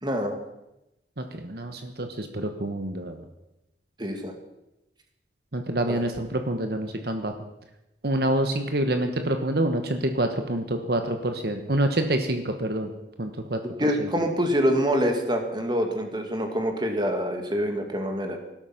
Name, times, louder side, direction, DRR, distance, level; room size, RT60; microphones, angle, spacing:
voice 1, 0.0-0.4 4.0-4.3 5.9-6.0 13.8-18.4, equal, 25° right, 4 dB, 2.3 m, -25 dB
voice 2, 1.2-3.2 5.5-7.3 8.0-12.9 13.2-13.6 14.0-14.1, right 1 dB, 60° right, 6 dB, 1.3 m, -27 dB
18.5 x 12.5 x 5.8 m, 0.92 s
head